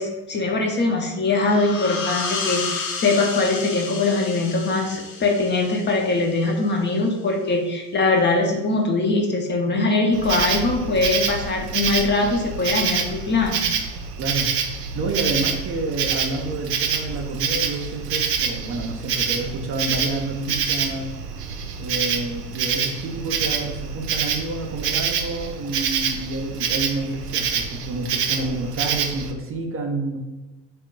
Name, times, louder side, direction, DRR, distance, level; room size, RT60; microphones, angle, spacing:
voice 1, 0.0-13.6, left 3 dB, 25° left, 2 dB, 0.6 m, -22 dB
sound 1, 1.3-6.7, left 4 dB, 65° left, 0.8 m, -31 dB
Insect, 10.1-29.3, right 6 dB, 80° right, 0.6 m, -26 dB
voice 2, 14.2-14.5 14.9-21.1 21.8-30.2, right 2 dB, 30° right, 2 dB, 0.5 m, -29 dB
3.5 x 2.4 x 3.6 m, 1.1 s
figure-of-eight pair, 55°, 47 cm